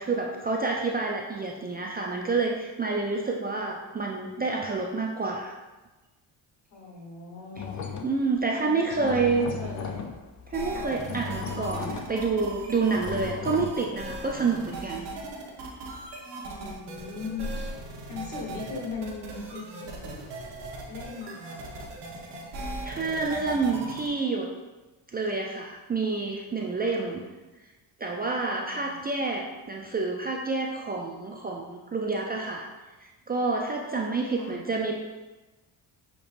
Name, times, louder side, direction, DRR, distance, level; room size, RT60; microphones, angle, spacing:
voice 1, 0.0-5.6 8.0-9.5 10.5-15.1 22.8-24.5 25.1-27.2 28.0-32.7 33.0-35.0, right 4 dB, 20° right, 0 dB, 0.3 m, -28 dB
voice 2, 6.7-7.8 8.6-10.1 10.7-10.9 16.5-17.8 18.1-20.3 20.9-21.7 26.9-27.2 28.6-29.0 34.3-34.6, left 4 dB, 70° left, -1 dB, 1.5 m, -39 dB
sound 1, 7.6-8.4 8.7-13.7, left 6 dB, 40° left, 0.5 m, -37 dB
sound 2, 10.5-24.1, right 2 dB, 60° right, 1.1 m, -39 dB
6.7 x 2.9 x 2.5 m, 1.2 s
cardioid pair, 90°, 47 cm